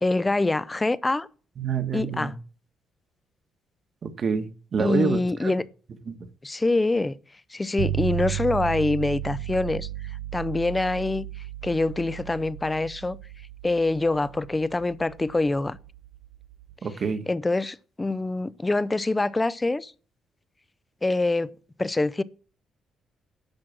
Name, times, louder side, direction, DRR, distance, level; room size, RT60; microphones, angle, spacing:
voice 1, 0.0-1.3 1.9-2.3 4.8-5.6 6.4-7.2 7.5-9.9 10.3-11.3 11.6-13.2 13.6-15.8 17.3-19.9 21.0-21.5 21.8-22.2, left 2 dB, 20° left, 0.6 m, -25 dB
voice 2, 1.6-2.3 4.0-5.5 6.1-6.2 16.8-17.3, right 6 dB, 50° right, 1.4 m, -27 dB
sound 1, 7.8-16.7, right 12 dB, 90° right, 0.4 m, -35 dB
10.5 x 6.3 x 6.2 m
cardioid pair, 90°, 0 cm